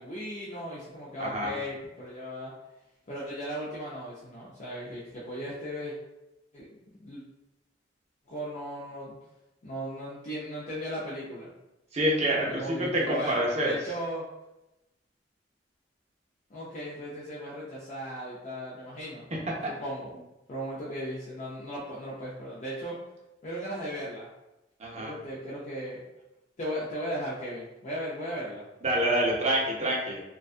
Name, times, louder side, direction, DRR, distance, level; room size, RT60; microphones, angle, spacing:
voice 1, 0.0-2.5 3.1-5.9 6.5-6.7 7.0-7.2 8.3-9.2 9.6-11.5 12.5-14.2 16.5-19.3 19.7-20.1 20.5-23.0 23.4-24.3 24.9-26.0 26.6-28.6, equal, 40° left, -7 dB, 0.4 m, -37 dB
voice 2, 1.2-1.5 11.9-13.8 19.3-19.6 24.8-25.1 28.8-30.2, right 1 dB, 35° right, -3 dB, 0.6 m, -27 dB
2.5 x 2.2 x 2.4 m, 0.96 s
head